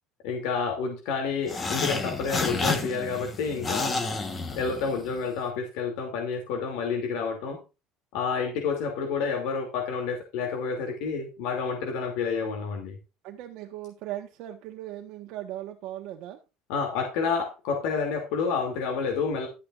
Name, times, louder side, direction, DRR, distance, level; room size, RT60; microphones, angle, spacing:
voice 1, 0.2-4.0 4.5-7.6 8.1-13.0 16.7-19.5, left 5 dB, 70° left, 2.7 m, -29 dB
sound 1, 1.5-5.2, left 3 dB, 20° left, 1.2 m, -30 dB
voice 2, 13.2-16.4, right 13 dB, 55° right, 1.2 m, -38 dB
12.5 x 9.5 x 2.5 m
cardioid pair, 180°, 0 cm